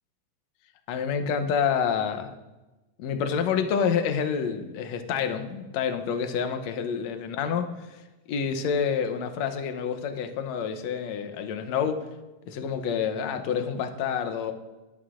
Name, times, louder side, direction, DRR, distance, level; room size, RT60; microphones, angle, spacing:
voice 1, 0.9-2.3 3.0-8.0 8.3-12.0 12.5-14.5, left 7 dB, 75° left, 7 dB, 1.6 m, -28 dB
20.0 x 11.5 x 2.5 m, 1.1 s
omnidirectional pair, 4.0 m